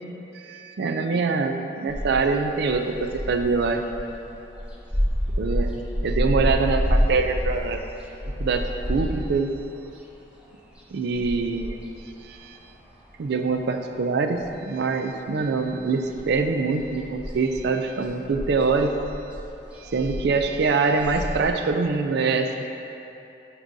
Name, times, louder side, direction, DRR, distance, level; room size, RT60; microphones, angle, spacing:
voice 1, 0.3-3.8 5.4-7.8 8.4-9.5 10.9-11.8 12.2-12.6 13.2-19.0 19.8-22.5, right 4 dB, 65° right, 6 dB, 0.4 m, -24 dB
sound 1, 1.9-13.5 13.8-15.1 15.3-21.5, equal, 5° right, 0.8 m, -29 dB
8.8 x 4.7 x 2.6 m, 2.9 s
head